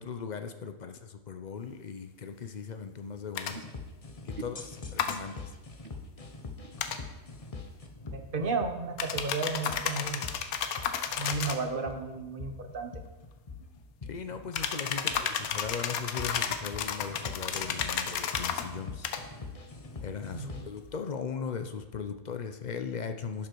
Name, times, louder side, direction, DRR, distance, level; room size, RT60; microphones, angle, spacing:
voice 1, 0.0-3.6 4.2-5.5 14.0-19.1 20.0-23.5, left 6 dB, 50° left, 8 dB, 0.5 m, -38 dB
sound 1, 3.4-3.5 5.0-5.2 6.8-7.0 9.0-11.6 14.5-18.7 19.0-19.2, left 8 dB, 85° left, 1.2 m, -32 dB
sound 2, 3.5-20.8, left 3 dB, 30° left, 0.9 m, -44 dB
voice 2, 8.1-10.2 11.2-12.9 20.3-20.7, right 4 dB, 45° right, 6 dB, 0.9 m, -33 dB
11.5 x 7.3 x 4.6 m, 1.1 s
omnidirectional pair, 1.5 m